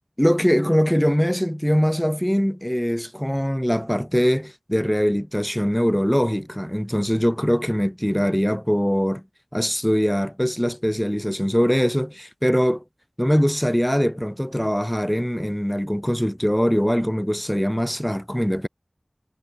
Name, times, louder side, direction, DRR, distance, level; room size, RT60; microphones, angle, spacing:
voice 1, 0.2-9.2 9.5-12.8 13.2-18.7, equal, 5° left, 0.7 m, -22 dB
wide cardioid pair, 45°, 0 cm